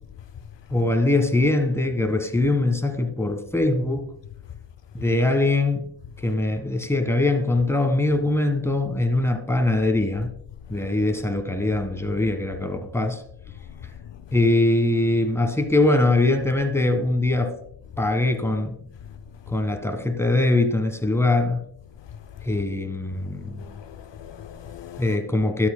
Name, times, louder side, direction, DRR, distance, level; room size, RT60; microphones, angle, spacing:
voice 1, 0.7-4.1 4.9-5.8 6.2-10.3 10.7-13.2 14.3-17.5 18.0-18.8 19.5-21.6 22.4-23.6 25.0-25.7, left 2 dB, 5° left, 1.4 m, -22 dB
voice 2, 22.1-22.6 23.4-25.2, left 9 dB, 60° left, 0.6 m, -41 dB
12.5 x 7.4 x 2.2 m
cardioid pair, 75°, 49 cm